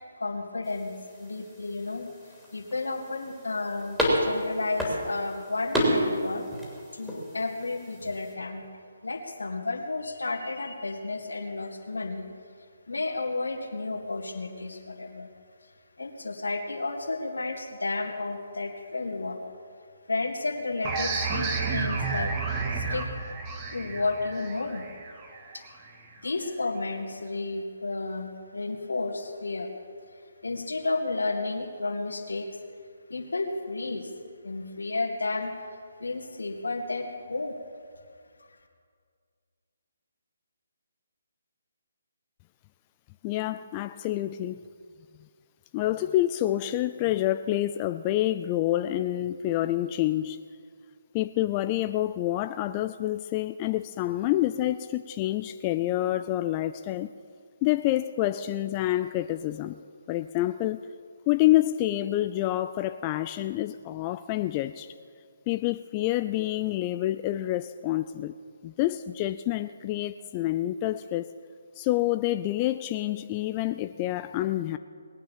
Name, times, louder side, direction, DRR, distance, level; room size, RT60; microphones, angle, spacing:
voice 1, 0.2-0.9 1.2-2.1 2.5-6.5 6.9-8.6 9.0-12.3 12.9-15.3 16.0-19.4 20.1-22.3 22.7-23.1 23.7-24.8 25.5-25.6 26.2-29.7 30.4-32.5 33.1-34.1 34.4-35.5 36.0-37.6, left 3 dB, 85° left, 4 dB, 2.2 m, -32 dB
sound 1, 0.6-8.3, equal, 5° right, 3.0 m, -31 dB
sound 2, 20.8-26.2, right 4 dB, 25° right, 1.8 m, -31 dB
voice 2, 43.2-44.6 45.7-50.4 51.1-57.1 57.6-59.8 60.1-60.8 61.3-64.9 65.5-68.3 68.6-71.3 71.8-74.8, left 14 dB, 25° left, 10 dB, 0.4 m, -27 dB
20.0 x 8.9 x 7.4 m, 2.1 s
figure-of-eight pair, 150°, 0 cm